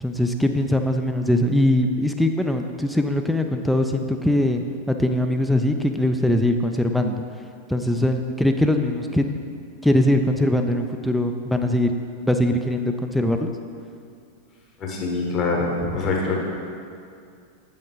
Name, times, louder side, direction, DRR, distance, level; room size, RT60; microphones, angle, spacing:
voice 1, 0.0-7.2 7.7-9.2 9.8-11.9 12.3-13.5, left 1 dB, ahead, 5 dB, 0.3 m, -21 dB
voice 2, 14.8-16.4, left 3 dB, 30° left, -1 dB, 1.2 m, -24 dB
7.8 x 5.3 x 3.8 m, 2.4 s
figure-of-eight pair, 90°, 0 cm